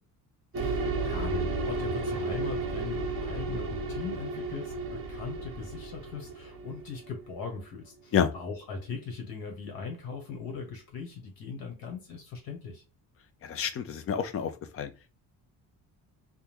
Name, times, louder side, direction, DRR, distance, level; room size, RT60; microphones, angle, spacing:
voice 1, 0.5-12.8, left 4 dB, 60° left, 1.3 m, -40 dB
sound 1, 0.5-7.6, right 3 dB, 35° right, 0.8 m, -33 dB
voice 2, 13.4-14.9, left 8 dB, 35° left, 0.5 m, -29 dB
3.6 x 2.2 x 2.9 m
cardioid pair, 165°, 40 cm